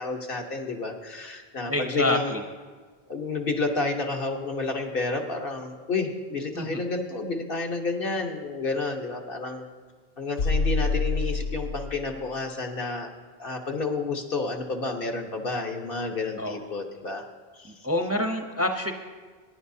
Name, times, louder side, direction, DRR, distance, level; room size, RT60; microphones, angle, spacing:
voice 1, 0.0-2.3 3.1-9.6 10.2-13.1 13.4-17.3 17.5-17.7, left 3 dB, 65° left, 2 dB, 1.3 m, -30 dB
voice 2, 1.7-2.4 6.5-6.8 16.4-16.5 17.6-18.9, left 1 dB, 15° right, 4 dB, 0.7 m, -27 dB
sound 1, 10.4-12.2, left 3 dB, 80° left, 0.9 m, -26 dB
22.0 x 10.0 x 2.7 m, 1.4 s
omnidirectional pair, 1.0 m